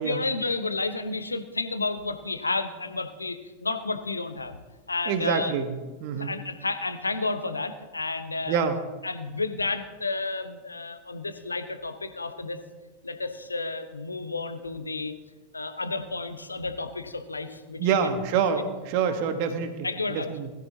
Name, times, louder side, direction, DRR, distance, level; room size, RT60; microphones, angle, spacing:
voice 1, 0.0-4.6 4.9-5.5 6.1-8.6 9.0-12.6 13.0-15.1 15.5-18.2 18.5-18.6 19.8-20.3, left 3 dB, 80° left, 9 dB, 1.0 m, -31 dB
voice 2, 5.1-5.7 6.0-6.4 8.5-8.8 17.8-20.5, right 6 dB, 45° right, 7 dB, 1.2 m, -26 dB
20.5 x 13.5 x 2.8 m, 1.2 s
figure-of-eight pair, 90°, 0 cm